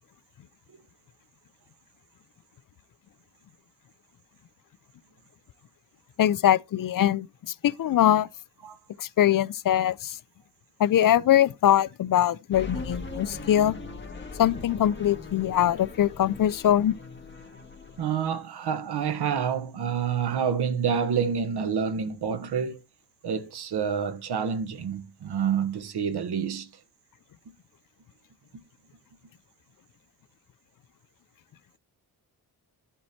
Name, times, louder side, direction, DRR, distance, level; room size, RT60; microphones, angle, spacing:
voice 1, 6.2-8.3 9.0-10.2 10.8-13.8 14.4-16.9, left 11 dB, 55° left, 0.6 m, -22 dB
sound 1, 12.5-18.0, left 3 dB, 30° left, 2.0 m, -40 dB
voice 2, 18.0-22.8 23.2-26.7, right 7 dB, 85° right, 1.4 m, -28 dB
11.5 x 4.5 x 4.2 m
wide cardioid pair, 105°, 38 cm